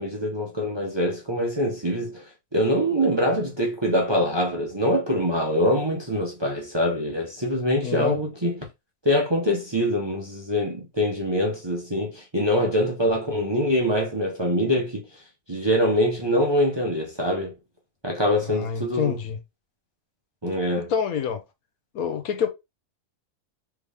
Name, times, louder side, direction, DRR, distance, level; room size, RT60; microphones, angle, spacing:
voice 1, 0.0-2.2 2.5-8.6 9.0-15.0 15.5-17.5 18.0-19.2 20.4-20.9, equal, 25° right, 0.7 m, -24 dB
voice 2, 7.8-8.2 18.5-19.4 20.9-21.4 21.9-22.5, left 7 dB, 75° left, 1.2 m, -27 dB
3.5 x 3.5 x 3.4 m
omnidirectional pair, 1.6 m